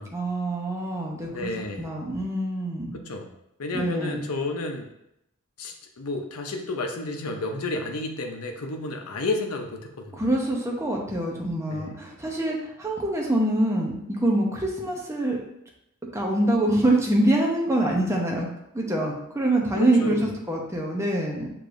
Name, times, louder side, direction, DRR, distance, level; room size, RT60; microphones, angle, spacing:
voice 1, 0.1-1.5 1.8-3.0 3.7-4.2 10.1-15.4 16.1-18.5 18.7-21.5, right 1 dB, 15° right, -1 dB, 0.7 m, -25 dB
voice 2, 1.3-1.9 2.9-3.3 3.6-4.9 5.6-10.2 11.7-12.0 19.8-20.3, left 2 dB, 80° left, 3 dB, 0.7 m, -31 dB
6.5 x 3.0 x 2.6 m, 0.81 s
head